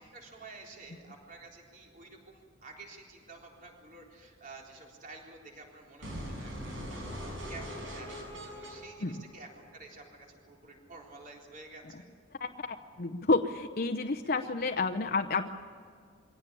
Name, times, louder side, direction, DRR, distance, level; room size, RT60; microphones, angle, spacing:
voice 1, 0.0-12.1 14.4-14.7, right 3 dB, 45° right, 0 dB, 3.9 m, -51 dB
sound 1, 6.0-10.0, equal, 90° right, 6.7 m, -41 dB
voice 2, 12.4-15.5, left 3 dB, 50° left, 5 dB, 0.8 m, -30 dB
23.5 x 17.0 x 10.0 m, 2.1 s
head